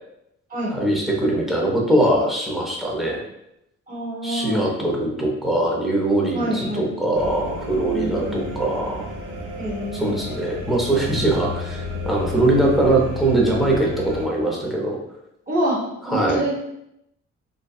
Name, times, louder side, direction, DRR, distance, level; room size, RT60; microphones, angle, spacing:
voice 1, 0.7-3.2 4.2-9.1 9.9-15.0 16.1-16.4, right 1 dB, ahead, -3 dB, 0.6 m, -22 dB
voice 2, 3.9-4.7 6.3-6.9 7.9-8.5 9.6-10.3 15.5-16.5, right 1 dB, 25° right, -5 dB, 1.1 m, -27 dB
sound 1, 7.1-14.3, left 2 dB, 45° right, 0.5 m, -32 dB
2.7 x 2.2 x 2.3 m, 0.82 s
cardioid pair, 90°, 30 cm